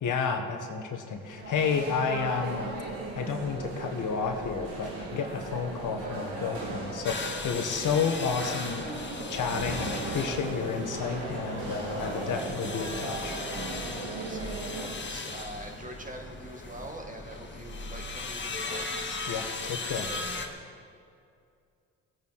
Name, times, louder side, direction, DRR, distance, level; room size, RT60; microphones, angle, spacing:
voice 1, 0.0-2.7 3.2-8.8 9.3-13.3 19.3-20.1, left 5 dB, 55° left, 5 dB, 1.6 m, -31 dB
sound 1, 1.2-14.8, right 2 dB, 70° right, 3.1 m, -37 dB
sound 2, 7.0-20.5, left 3 dB, 30° left, 1.9 m, -38 dB
voice 2, 14.0-19.3, right 1 dB, 20° right, 3 dB, 2.0 m, -44 dB
20.5 x 8.6 x 4.8 m, 2.4 s
hypercardioid pair, 60°, 38 cm